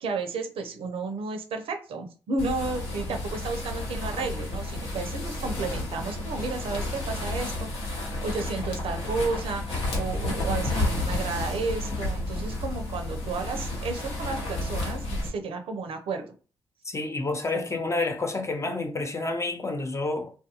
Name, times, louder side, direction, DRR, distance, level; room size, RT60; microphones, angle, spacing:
voice 1, 0.0-16.3 17.5-17.8, right 3 dB, 65° right, 0.5 m, -32 dB
sound 1, 2.4-15.3, left 2 dB, 75° left, 0.9 m, -31 dB
voice 2, 16.8-20.3, left 3 dB, 30° left, 0.6 m, -29 dB
2.4 x 2.2 x 2.8 m
hypercardioid pair, 40°, 10 cm